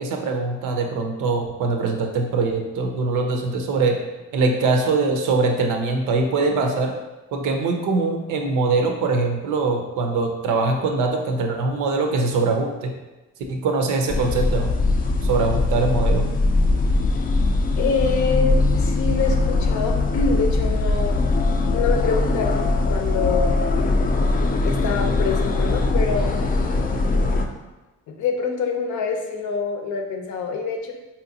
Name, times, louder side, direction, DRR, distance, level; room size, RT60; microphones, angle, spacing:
voice 1, 0.0-4.0 4.3-6.9 7.3-12.9 13.5-14.7 15.2-16.3, right 3 dB, 90° right, 3 dB, 0.6 m, -22 dB
sound 1, 14.1-27.5, left 3 dB, 30° left, 0.4 m, -21 dB
voice 2, 17.8-21.2 21.7-23.6 24.6-26.4 28.1-30.9, left 4 dB, 70° left, 3 dB, 0.6 m, -25 dB
3.6 x 2.8 x 2.6 m, 1.1 s
cardioid pair, 90°, 30 cm